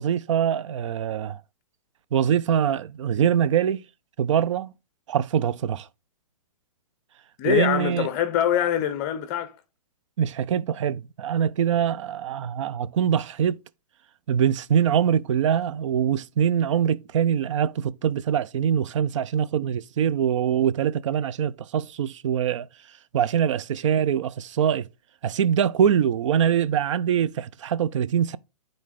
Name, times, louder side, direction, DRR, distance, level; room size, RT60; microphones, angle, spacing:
voice 1, 0.0-1.4 2.1-3.8 4.2-4.7 5.1-5.9 7.4-8.1 10.2-13.6 14.3-22.7 23.1-24.9 25.2-28.4, right 8 dB, 55° right, 0.5 m, -23 dB
voice 2, 7.4-9.5, left 11 dB, 30° left, 0.6 m, -24 dB
9.6 x 3.8 x 3.6 m
hypercardioid pair, 140°, 19 cm